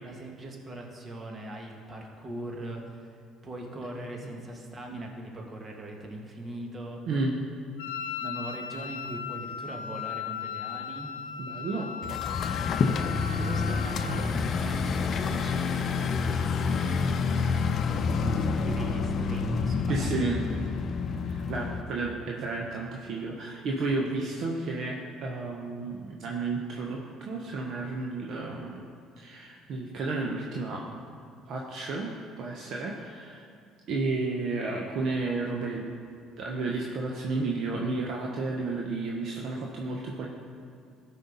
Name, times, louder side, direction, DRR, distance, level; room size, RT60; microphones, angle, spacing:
voice 1, 0.0-7.0 8.2-11.1 13.1-20.6, right 1 dB, 35° right, 1 dB, 1.8 m, -41 dB
Wind instrument woodwind instrument, 7.8-14.4, left 8 dB, 90° left, 0.3 m, -37 dB
voice 2, 11.4-11.9 19.9-20.4 21.2-28.9 29.2-30.8 31.5-32.1 32.4-33.4 33.9-35.8 36.4-40.3, right 3 dB, 60° right, -1 dB, 1.0 m, -32 dB
sound 1, 12.0-21.8, left 5 dB, 50° left, 0.6 m, -28 dB
13.5 x 5.6 x 4.1 m, 2.3 s
hypercardioid pair, 65°, 0 cm